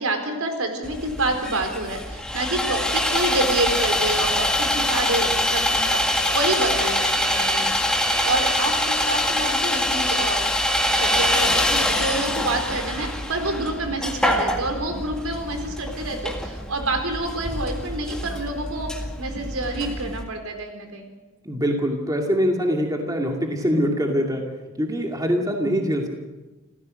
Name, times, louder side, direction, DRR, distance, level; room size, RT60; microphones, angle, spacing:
voice 1, 0.0-7.8 8.2-10.4 10.9-21.1, right 2 dB, 80° right, 5 dB, 4.4 m, -28 dB
Sawing, 0.8-20.2, left 1 dB, 5° left, 1.8 m, -24 dB
voice 2, 21.4-26.1, equal, 15° right, 1 dB, 2.3 m, -23 dB
28.5 x 15.5 x 6.5 m, 1.2 s
head